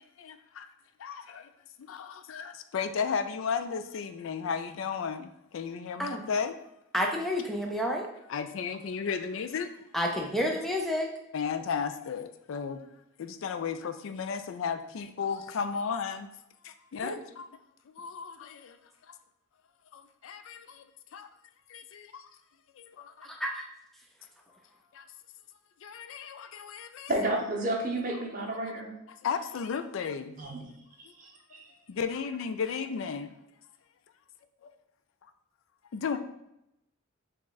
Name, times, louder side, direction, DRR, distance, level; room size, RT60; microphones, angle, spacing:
voice 1, 0.2-0.7 1.0-1.5 1.8-6.6 8.3-9.8 11.3-12.8 13.2-16.3 16.6-17.5 17.9-18.8 19.9-20.8 21.1-21.3 21.7-22.3 22.8-23.3 24.9-25.0 25.8-27.1 29.1-30.4 31.9-33.3 34.6-34.7 35.9-36.2, left 6 dB, 70° left, 0.4 m, -34 dB
voice 2, 6.9-8.0 9.9-11.1 17.0-17.1 23.2-23.6, equal, ahead, 0.5 m, -30 dB
voice 3, 27.1-28.9 30.4-30.7 31.2-31.6, right 1 dB, 40° right, 0.8 m, -31 dB
4.9 x 2.4 x 3.9 m
head